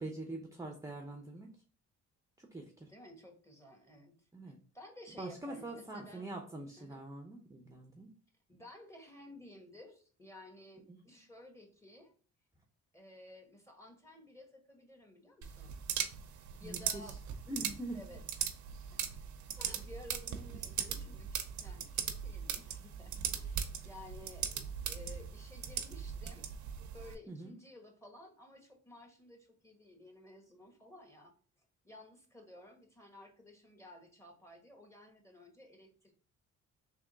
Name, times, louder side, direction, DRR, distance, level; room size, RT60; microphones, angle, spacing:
voice 1, 0.0-1.5 2.4-2.9 4.3-4.6 5.2-8.2 16.6-17.2 17.5-18.0 27.3-27.5, right 2 dB, 10° right, 2 dB, 0.7 m, -44 dB
voice 2, 2.9-4.3 4.7-6.3 6.8-7.0 8.5-12.1 12.9-15.8 16.6-17.2 17.9-18.6 18.9-19.0 19.6-26.5 26.9-31.3 31.8-36.1, left 1 dB, 10° left, 2 dB, 1.2 m, -55 dB
sound 1, 15.4-27.1, right 8 dB, 70° right, 0.7 m, -39 dB
3.5 x 2.9 x 3.9 m, 0.41 s
cardioid pair, 90°, 30 cm